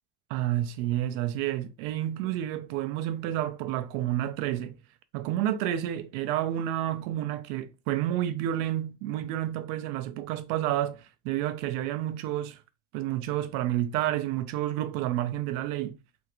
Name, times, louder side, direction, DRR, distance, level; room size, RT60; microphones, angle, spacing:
voice 1, 0.3-4.7 5.1-12.6 12.9-16.0, right 12 dB, 85° right, 0.6 m, -30 dB
3.5 x 2.4 x 2.9 m
cardioid pair, 140°, 40 cm